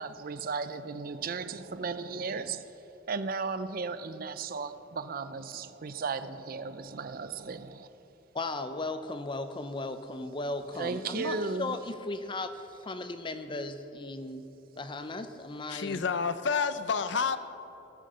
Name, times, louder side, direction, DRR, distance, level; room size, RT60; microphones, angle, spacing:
voice 1, 0.0-2.6 3.1-7.9 10.7-11.8, right 4 dB, 50° right, 12 dB, 0.5 m, -35 dB
voice 2, 8.3-12.5 12.8-14.4 14.8-16.0, left 2 dB, 25° left, 9 dB, 0.6 m, -36 dB
voice 3, 15.7-17.4, left 5 dB, 70° left, 12 dB, 0.6 m, -29 dB
16.5 x 6.5 x 6.7 m, 2.9 s
head